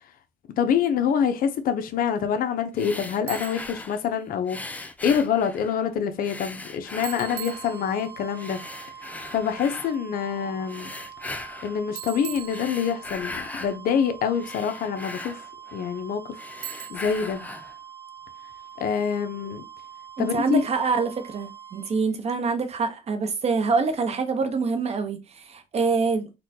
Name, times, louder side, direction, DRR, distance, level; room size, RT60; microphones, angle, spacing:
voice 1, 0.6-8.6 9.3-10.9 11.6-15.4 15.7-16.4 16.9-17.4 18.8-19.6 20.2-20.6, left 7 dB, 55° left, 0.6 m, -26 dB
sound 1, 2.7-4.1 4.5-5.9 6.2-7.8 8.3-9.9 10.6-11.8 12.4-13.8 14.2-16.0 16.3-17.8, left 2 dB, 10° left, 0.4 m, -39 dB
Bicycle, 3.3-3.8 7.0-8.3 12.0-13.2 16.6-17.3, right 12 dB, 60° right, 0.4 m, -39 dB
sound 2, 6.8-22.1, right 9 dB, 80° right, 1.4 m, -44 dB
voice 2, 20.2-26.3, right 4 dB, 40° right, 0.8 m, -25 dB
4.2 x 2.2 x 2.7 m
cardioid pair, 110°, 17 cm